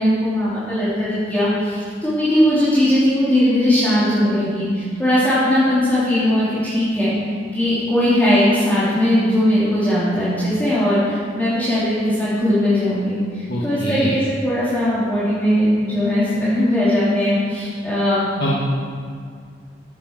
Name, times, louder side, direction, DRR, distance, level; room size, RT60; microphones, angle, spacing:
voice 1, 0.0-7.1 7.5-18.3, left 1 dB, 10° left, -12 dB, 3.3 m, -19 dB
voice 2, 13.5-14.1 18.4-18.6, equal, 60° left, -6 dB, 1.7 m, -23 dB
14.0 x 8.4 x 6.0 m, 2.1 s
head